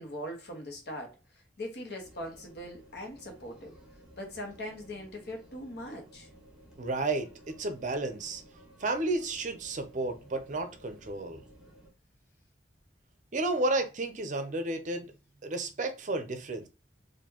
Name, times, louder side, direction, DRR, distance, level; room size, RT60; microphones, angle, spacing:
voice 1, 0.0-3.7 4.2-6.3, left 1 dB, 60° left, 1.2 m, -41 dB
sound 1, 2.0-11.9, right 1 dB, 5° right, 1.0 m, -55 dB
voice 2, 6.8-8.4 8.8-11.4 13.3-15.1 15.4-16.7, right 2 dB, 40° right, 0.6 m, -32 dB
4.3 x 2.6 x 2.8 m
head